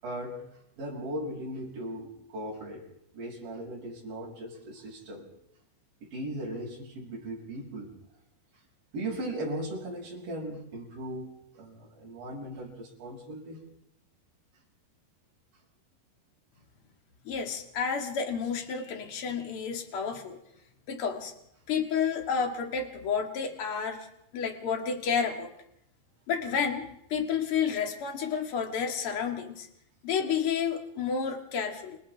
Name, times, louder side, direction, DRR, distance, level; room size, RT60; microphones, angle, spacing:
voice 1, 0.0-0.4 0.8-2.9 3.1-5.3 6.0-7.9 8.9-13.6, right 1 dB, 45° right, -3 dB, 8.1 m, -38 dB
voice 2, 17.2-20.4 20.9-21.3 21.7-24.1 24.3-25.5 26.3-29.7 30.0-32.0, left 6 dB, 50° left, 3 dB, 1.7 m, -30 dB
29.5 x 29.0 x 3.6 m, 0.78 s
omnidirectional pair, 5.6 m